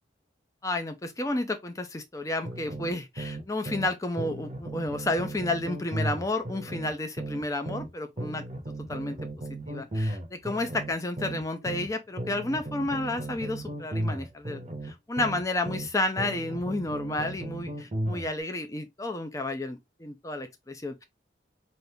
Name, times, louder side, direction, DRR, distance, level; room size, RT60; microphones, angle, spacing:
voice 1, 0.6-9.2 9.7-21.0, left 2 dB, 15° left, 0.5 m, -31 dB
sound 1, 2.5-3.9 4.2-7.9 8.2-11.9 12.2-15.9 16.2-18.3, right 1 dB, 35° right, 0.7 m, -35 dB
3.5 x 2.5 x 2.7 m
head